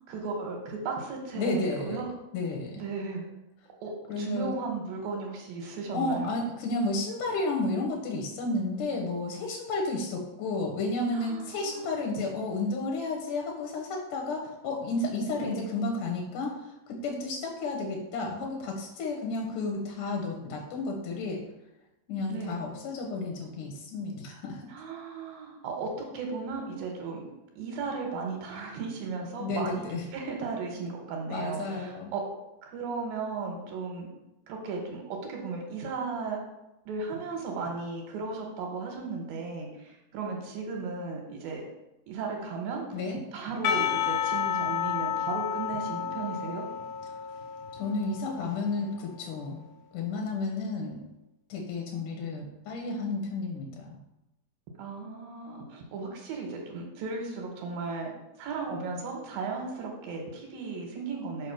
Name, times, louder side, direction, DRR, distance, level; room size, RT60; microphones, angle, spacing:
voice 1, 0.0-2.1 2.8-3.3 3.8-6.3 11.1-11.9 15.4-15.7 22.3-22.6 24.7-27.3 27.6-32.3 32.6-34.1 34.5-36.4 36.9-41.6 42.1-43.0 43.3-46.7 54.8-58.1 58.4-61.5, right 4 dB, 75° right, 1 dB, 2.6 m, -35 dB
voice 2, 1.3-2.0 2.3-2.8 4.1-4.5 5.9-21.4 22.1-24.7 29.4-30.0 31.3-32.1 42.9-43.2 47.7-49.6 49.9-51.0 51.5-54.0, left 2 dB, 70° left, 0 dB, 2.3 m, -32 dB
Percussion / Church bell, 43.6-48.9, left 8 dB, 90° left, 1.8 m, -31 dB
5.5 x 5.0 x 5.7 m, 0.92 s
omnidirectional pair, 4.5 m